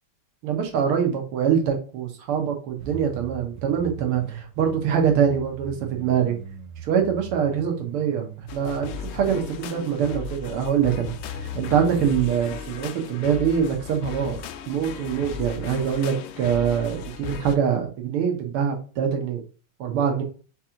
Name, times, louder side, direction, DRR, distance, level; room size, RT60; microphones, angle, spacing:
voice 1, 0.4-6.4 6.8-14.4 14.7-19.4 19.8-20.2, right 8 dB, 85° right, 3 dB, 1.9 m, -24 dB
sound 1, 2.8-12.2, right 8 dB, 70° right, 0.9 m, -41 dB
sound 2, 8.5-17.6, left 7 dB, 85° left, 1.5 m, -36 dB
4.6 x 3.0 x 3.7 m, 0.37 s
omnidirectional pair, 2.4 m